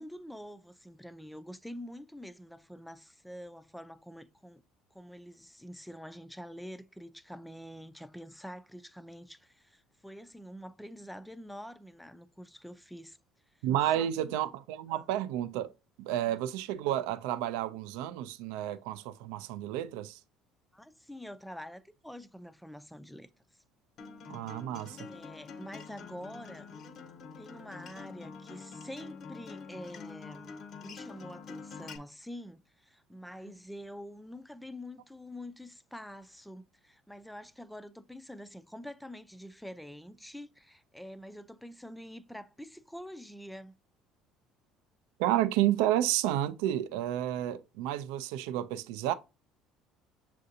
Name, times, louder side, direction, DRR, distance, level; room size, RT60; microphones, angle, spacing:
voice 1, 0.0-4.6 4.9-13.2 13.5-13.6 13.9-14.3 14.9-15.1 16.2-16.4 20.7-23.3 25.0-26.7 27.4-43.7, equal, 5° left, 0.3 m, -46 dB
voice 2, 13.6-15.7 16.0-20.2 24.3-25.0 45.2-49.1, right 12 dB, 85° right, 0.3 m, -31 dB
Acoustic guitar, 24.0-32.0, left 5 dB, 50° left, 0.6 m, -46 dB
6.6 x 2.5 x 2.7 m
supercardioid pair, 100°, 0 cm